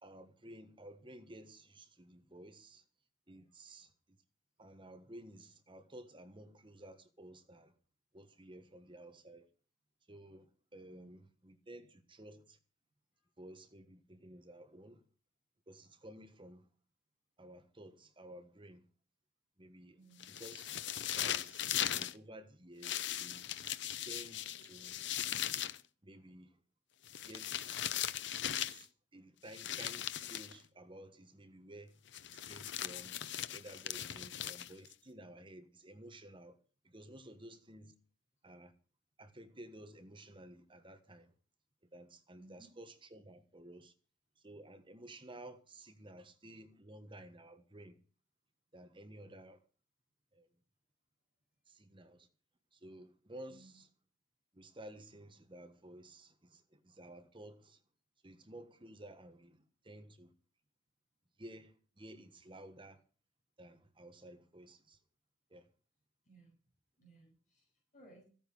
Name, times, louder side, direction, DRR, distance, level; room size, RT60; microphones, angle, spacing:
voice 1, 0.0-2.8 3.3-3.9 4.6-7.7 8.1-9.5 10.1-12.6 13.4-15.0 15.7-16.7 17.4-18.8 19.6-20.0 20.4-23.5 24.0-25.0 26.0-26.6 27.3-27.7 28.5-32.0 32.4-33.2 33.5-36.6 36.8-37.9 38.4-38.7 39.2-41.3 41.9-43.9 44.4-48.0 48.7-49.6 50.3-50.5 51.7-52.3 52.7-53.9 54.5-57.8 58.2-60.3 61.4-63.0 63.6-65.0 65.5-65.7, right 1 dB, 25° right, 1.4 m, -54 dB
voice 2, 10.8-11.2 13.2-13.3 19.9-20.3 34.0-34.4 42.3-42.7 53.5-53.8 66.3-66.6 67.0-68.2, right 2 dB, 40° left, 7.2 m, -62 dB
sound 1, 20.2-22.1 22.8-25.8 27.1-28.9 29.5-30.6 32.1-34.9, left 11 dB, 65° left, 0.7 m, -39 dB
15.0 x 9.0 x 6.4 m
head